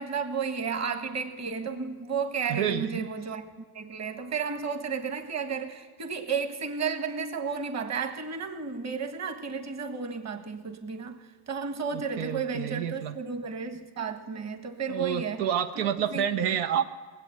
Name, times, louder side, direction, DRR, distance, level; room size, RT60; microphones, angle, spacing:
voice 1, 0.0-3.4 3.7-11.2 11.5-15.4 15.7-16.3, right 5 dB, 35° right, 7 dB, 1.5 m, -33 dB
voice 2, 2.5-3.1 11.9-13.2 14.9-16.8, right 9 dB, 90° right, 7 dB, 1.0 m, -29 dB
19.5 x 8.4 x 7.9 m, 1.4 s
cardioid pair, 110°, 49 cm